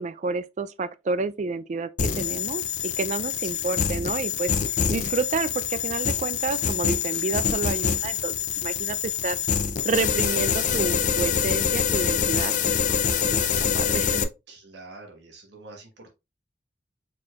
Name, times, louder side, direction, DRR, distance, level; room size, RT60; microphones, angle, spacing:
voice 1, 0.0-4.5 4.9-9.4 9.8-13.0 13.3-14.2, right 4 dB, 40° right, 0.4 m, -30 dB
sound 1, 2.0-14.2, left 7 dB, 45° left, 0.4 m, -25 dB
voice 2, 14.5-16.1, right 3 dB, 65° right, 1.2 m, -46 dB
4.4 x 4.3 x 2.4 m
head